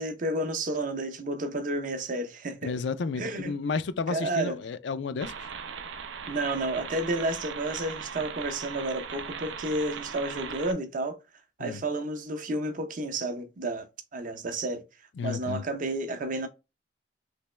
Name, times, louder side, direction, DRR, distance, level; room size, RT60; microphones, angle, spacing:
voice 1, 0.0-2.7 3.2-3.5 4.1-4.6 6.3-11.2 11.6-13.9 14.1-14.8 15.2-16.5, right 2 dB, 45° right, 0.6 m, -31 dB
voice 2, 2.6-5.5 11.6-11.8 15.2-15.6, left 4 dB, 70° left, 0.4 m, -32 dB
sound 1, 5.2-10.7, right 6 dB, 90° right, 0.5 m, -39 dB
3.3 x 2.9 x 3.1 m
head